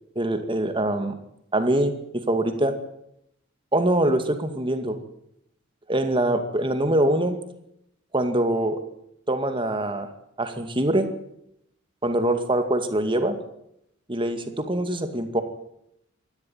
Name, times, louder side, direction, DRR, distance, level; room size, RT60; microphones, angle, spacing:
voice 1, 0.2-1.2 1.5-2.8 3.7-5.0 5.9-7.4 8.1-8.8 9.3-10.1 10.4-11.1 12.0-13.4 14.1-15.4, right 1 dB, 25° right, 7 dB, 2.3 m, -24 dB
24.5 x 13.0 x 9.5 m, 0.78 s
head